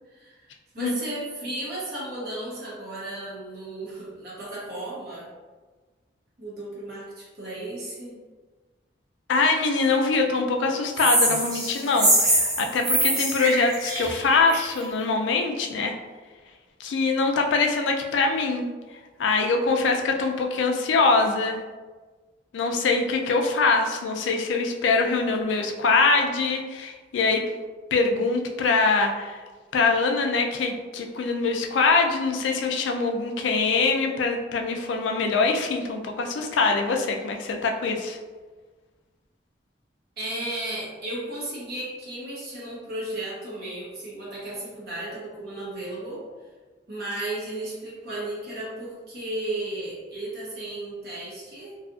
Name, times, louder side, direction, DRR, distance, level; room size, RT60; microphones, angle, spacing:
voice 1, 0.1-0.5 0.7-5.3 6.4-8.2 40.2-46.2 46.9-51.7, right 1 dB, 55° right, -7 dB, 0.7 m, -34 dB
voice 2, 9.3-15.9 16.8-18.7 19.2-21.6 22.5-27.4 27.9-29.4 29.7-38.2, left 4 dB, 90° left, 3 dB, 0.4 m, -23 dB
sound 1, 11.0-14.8, right 1 dB, 20° right, 0.7 m, -23 dB
2.6 x 2.4 x 2.4 m, 1.3 s
head